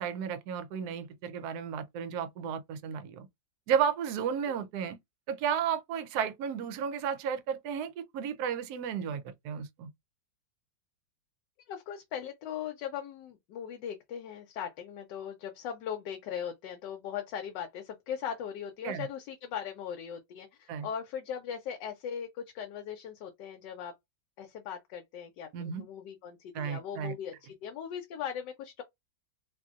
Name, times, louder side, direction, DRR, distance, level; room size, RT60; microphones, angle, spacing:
voice 1, 0.0-3.3 3.7-5.0 5.3-9.9 18.8-19.1 20.7-20.9 25.5-25.8 26.5-27.2, right 7 dB, 70° right, 1.0 m, -33 dB
voice 2, 11.7-23.9 24.4-28.8, left 8 dB, 75° left, 1.2 m, -39 dB
2.9 x 2.6 x 2.3 m
omnidirectional pair, 2.0 m